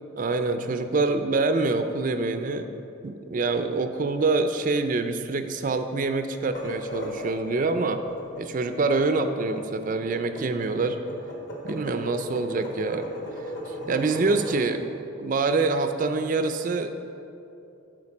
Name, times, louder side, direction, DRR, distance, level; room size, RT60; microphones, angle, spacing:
voice 1, 0.2-8.0 8.4-11.0 11.6-13.1 13.7-17.1, right 3 dB, 40° right, 8 dB, 0.4 m, -26 dB
sound 1, 6.4-14.6, equal, 50° left, 1.4 m, -37 dB
9.6 x 4.6 x 5.9 m, 2.8 s
head